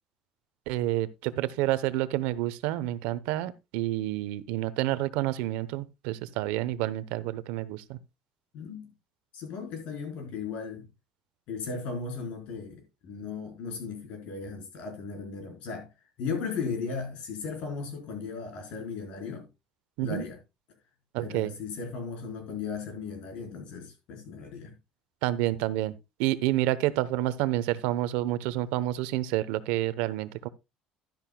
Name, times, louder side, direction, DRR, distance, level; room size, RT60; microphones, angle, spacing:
voice 1, 0.7-8.0 20.0-20.2 21.1-21.5 25.2-30.5, right 15 dB, 85° right, 0.9 m, -29 dB
voice 2, 8.5-8.9 9.3-10.9 11.5-15.9 16.2-19.5 20.0-20.4 21.2-24.7, left 5 dB, 55° left, 4.3 m, -36 dB
12.0 x 10.5 x 2.3 m
cardioid pair, 170°, 2 cm